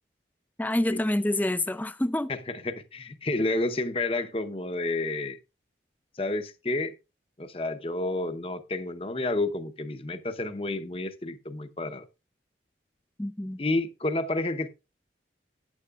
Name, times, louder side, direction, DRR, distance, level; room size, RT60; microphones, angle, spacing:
voice 1, 0.6-2.3 13.2-13.6, left 1 dB, 10° left, 0.5 m, -27 dB
voice 2, 2.3-5.4 6.2-6.9 7.4-12.1 13.6-14.7, left 2 dB, 30° left, 0.8 m, -30 dB
13.5 x 9.6 x 2.4 m
head